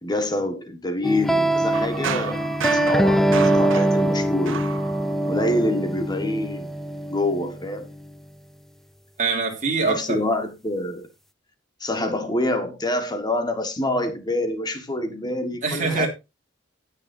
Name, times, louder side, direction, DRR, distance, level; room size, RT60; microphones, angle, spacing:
voice 1, 0.0-4.6 5.3-6.7 7.1-7.9 9.8-11.1 11.8-16.1, left 1 dB, 20° left, 1.6 m, -26 dB
sound 1, 1.0-8.1, right 1 dB, ahead, 0.5 m, -23 dB
sound 2, 1.7-5.5, right 6 dB, 70° right, 0.6 m, -32 dB
voice 2, 9.2-10.2 15.6-16.1, right 4 dB, 40° right, 3.0 m, -23 dB
18.5 x 6.6 x 2.7 m
head